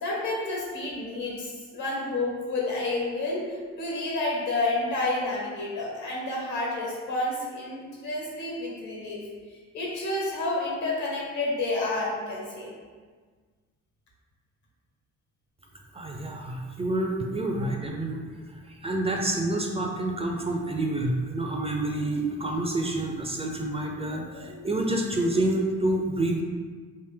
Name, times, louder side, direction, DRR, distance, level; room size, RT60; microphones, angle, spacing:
voice 1, 0.0-9.2 9.7-12.7 24.1-24.7, left 2 dB, 75° left, -3 dB, 1.3 m, -30 dB
voice 2, 15.9-18.2 18.7-26.4, right 1 dB, 20° right, 1 dB, 0.4 m, -28 dB
3.5 x 2.5 x 3.4 m, 1.5 s
cardioid pair, 90°, 30 cm